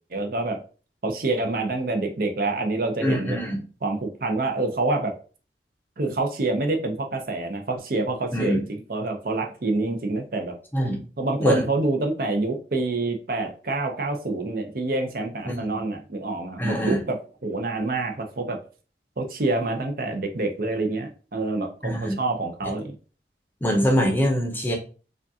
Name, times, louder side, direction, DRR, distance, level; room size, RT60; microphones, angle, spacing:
voice 1, 0.1-0.6 1.0-3.4 3.8-5.1 6.0-8.6 8.9-10.6 11.2-17.2 17.4-18.6 19.2-23.0, right 2 dB, 55° right, 0.6 m, -27 dB
voice 2, 3.0-3.6 8.3-8.6 10.7-11.0 11.4-11.6 15.5-15.8 16.6-17.0 21.8-22.2 23.6-24.8, equal, 10° left, 0.7 m, -24 dB
5.0 x 2.3 x 2.7 m
head